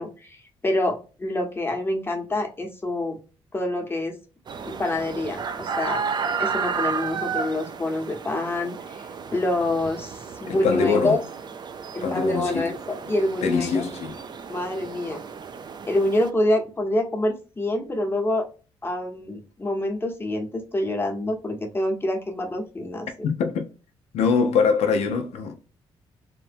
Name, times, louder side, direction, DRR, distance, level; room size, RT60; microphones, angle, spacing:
voice 1, 0.0-3.2 3.5-4.1 4.6-6.0 6.4-11.2 11.9-13.8 14.5-15.2 15.9-18.4 18.8-23.3, left 1 dB, 20° left, 0.9 m, -26 dB
sound 1, 4.5-16.3, right 6 dB, 40° right, 0.4 m, -33 dB
voice 2, 10.5-11.2 12.0-12.7 13.4-14.2 23.2-23.7 24.1-25.6, left 5 dB, 75° left, 0.5 m, -23 dB
3.0 x 2.1 x 2.5 m
cardioid pair, 70°, 11 cm